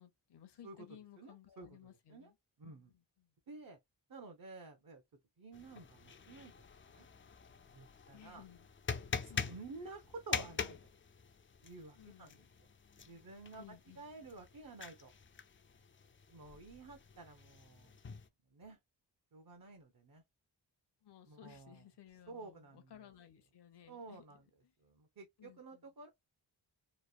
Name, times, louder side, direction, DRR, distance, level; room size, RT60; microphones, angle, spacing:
voice 1, 0.0-2.3 2.6-3.3 8.1-9.0 9.3-9.4 11.9-12.5 13.6-14.0 21.0-24.7 25.4-25.9, left 10 dB, 60° left, 0.7 m, -59 dB
voice 2, 1.2-2.3 2.6-2.9 3.5-3.8 4.1-5.0 5.4-6.7 6.9-7.1 7.7-8.4 9.2-10.8 11.6-12.4 13.0-15.1 16.3-18.0 18.5-18.8 19.3-20.2 21.3-21.8 22.3-22.9 23.9-24.4 24.8-26.1, right 3 dB, 45° right, 0.8 m, -52 dB
sound 1, 5.5-18.3, left 5 dB, 30° left, 0.4 m, -45 dB
3.1 x 2.1 x 2.3 m
cardioid pair, 45°, 47 cm